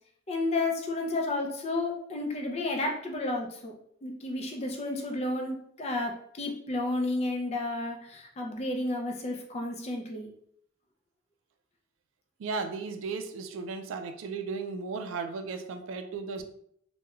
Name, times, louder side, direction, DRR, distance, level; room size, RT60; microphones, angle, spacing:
voice 1, 0.3-3.7 4.0-10.3 16.4-16.5, left 2 dB, 35° left, 1 dB, 0.4 m, -32 dB
voice 2, 12.4-16.4, right 4 dB, 85° right, 7 dB, 0.3 m, -35 dB
2.9 x 2.2 x 2.3 m, 0.67 s
head